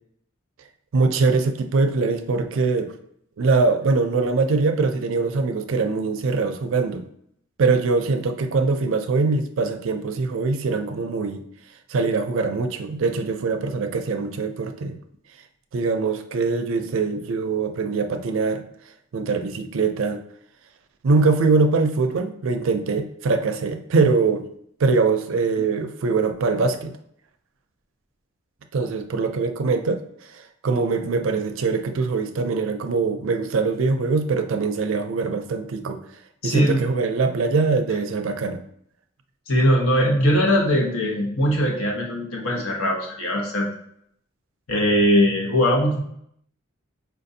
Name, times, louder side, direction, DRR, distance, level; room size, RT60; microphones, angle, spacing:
voice 1, 0.9-2.9 3.4-7.0 7.6-11.4 11.9-15.0 15.7-18.6 19.1-20.2 21.0-24.5 24.8-27.0 28.7-30.0 30.6-36.0 36.4-38.6, right 4 dB, 65° right, 7 dB, 0.4 m, -22 dB
voice 2, 36.4-36.8 39.5-43.7 44.7-46.0, equal, 80° left, -1 dB, 1.0 m, -20 dB
4.5 x 2.5 x 2.7 m, 0.70 s
head